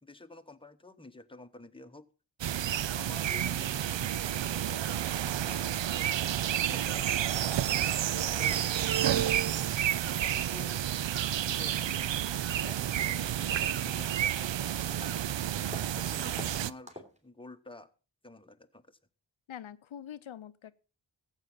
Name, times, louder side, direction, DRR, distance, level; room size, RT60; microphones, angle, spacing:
voice 1, 0.0-2.1 2.9-7.1 8.1-8.8 10.1-10.8 11.5-12.0 12.6-14.7 15.8-17.9 18.2-19.0, left 2 dB, 10° left, 1.1 m, -50 dB
sound 1, 2.4-16.7, right 11 dB, 70° right, 0.6 m, -30 dB
sound 2, 12.4-12.5 12.9-13.2 13.6-14.0 14.4-14.6 15.0-15.2 15.7-15.9 16.3-16.5 16.9-17.2, left 1 dB, 15° right, 3.5 m, -47 dB
voice 2, 19.5-20.7, left 10 dB, 90° left, 0.7 m, -44 dB
14.5 x 8.2 x 5.7 m
wide cardioid pair, 65°, 46 cm